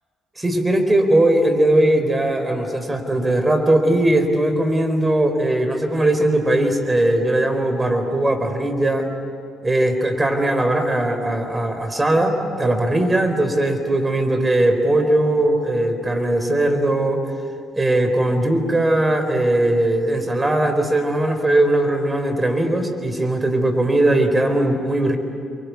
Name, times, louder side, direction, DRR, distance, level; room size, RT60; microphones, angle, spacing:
voice 1, 0.4-9.1 9.6-17.2 17.7-25.2, right 1 dB, 20° right, 6 dB, 4.3 m, -19 dB
29.5 x 24.0 x 8.5 m, 2.4 s
figure-of-eight pair, 45°, 0 cm